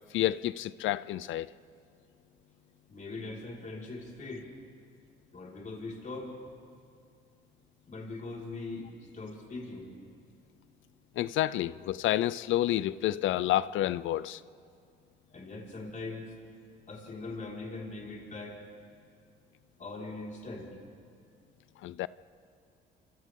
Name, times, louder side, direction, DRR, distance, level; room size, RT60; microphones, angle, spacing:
voice 1, 0.1-1.5 11.2-14.4 21.8-22.1, left 14 dB, 80° left, 18 dB, 0.5 m, -29 dB
voice 2, 2.9-4.5 5.3-6.4 7.9-9.9 15.3-16.3 16.9-18.6 19.8-20.7, left 3 dB, 40° left, -2 dB, 5.0 m, -41 dB
29.5 x 26.0 x 3.7 m, 2.3 s
cardioid pair, 90°, 20 cm